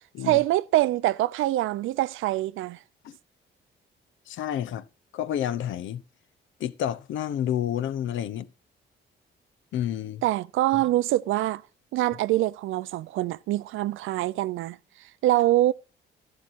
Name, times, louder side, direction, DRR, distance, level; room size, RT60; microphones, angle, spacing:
voice 1, 0.2-2.8 10.2-11.6 11.9-14.8 15.2-15.7, right 15 dB, 85° right, 0.5 m, -24 dB
voice 2, 4.3-4.8 5.1-6.0 6.6-8.5 9.7-10.2 10.7-10.8, left 10 dB, 75° left, 0.8 m, -29 dB
13.0 x 11.5 x 2.6 m
cardioid pair, 90°, 20 cm